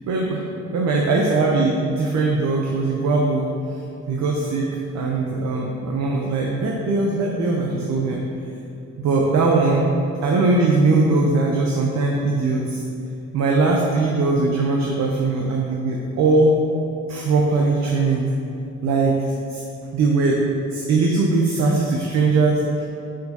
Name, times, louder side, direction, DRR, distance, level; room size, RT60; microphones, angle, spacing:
voice 1, 0.1-0.4 0.7-3.5 4.1-8.2 9.0-9.9 10.2-12.8 13.3-16.6 17.1-18.2 18.8-19.6 19.9-20.4 20.7-22.9, right 3 dB, 65° right, -1 dB, 0.8 m, -20 dB
6.9 x 6.2 x 2.8 m, 2.8 s
cardioid pair, 90°, 30 cm